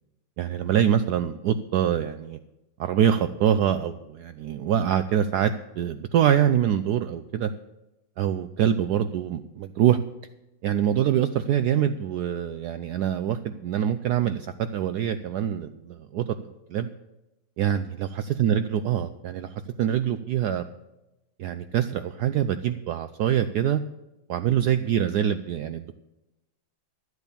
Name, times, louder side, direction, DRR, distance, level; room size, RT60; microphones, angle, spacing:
voice 1, 0.4-2.4 2.8-7.5 8.2-10.0 10.6-16.2 16.7-16.9 17.6-20.7 21.4-23.8 24.3-26.0, right 9 dB, 85° right, 11 dB, 0.8 m, -24 dB
12.0 x 8.2 x 6.9 m, 0.96 s
omnidirectional pair, 2.3 m